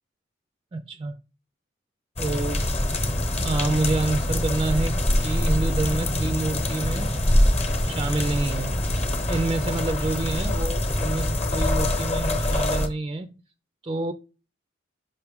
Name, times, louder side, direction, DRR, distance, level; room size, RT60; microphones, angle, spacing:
voice 1, 0.7-1.2 2.2-2.7 3.4-7.5 7.8-8.7 9.3-13.4 13.8-14.1, right 2 dB, 25° right, 0.3 m, -28 dB
sound 1, 2.2-12.9, left 1 dB, 35° left, 1.0 m, -24 dB
5.8 x 5.5 x 3.5 m
head